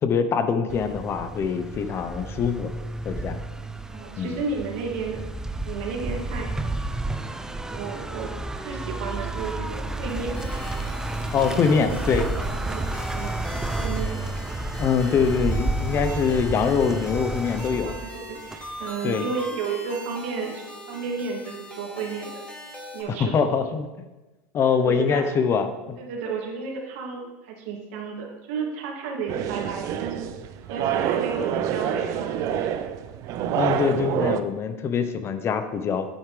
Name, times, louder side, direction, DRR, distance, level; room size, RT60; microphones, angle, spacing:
voice 1, 0.0-2.7 3.0-3.4 4.2-4.3 11.3-12.3 14.8-17.9 19.0-19.3 23.1-23.9 24.5-26.0 33.5-36.1, left 6 dB, 35° left, 9 dB, 0.9 m, -24 dB
sound 1, 0.7-18.9, right 2 dB, 10° right, 0.6 m, -31 dB
voice 2, 3.9-5.2 5.6-6.5 7.7-8.3 8.6-10.3 11.5-12.2 12.7-12.8 13.1-13.5 13.8-14.1 17.8-22.3 22.9-23.5 24.8-25.3 26.0-30.3 30.7-32.6, right 5 dB, 75° right, -1 dB, 2.6 m, -32 dB
sound 2, 10.3-23.0, left 1 dB, 15° left, 2.7 m, -40 dB
sound 3, 29.3-34.4, right 9 dB, 50° right, 0.7 m, -27 dB
9.4 x 8.5 x 3.4 m, 1.1 s
supercardioid pair, 105°, 7 cm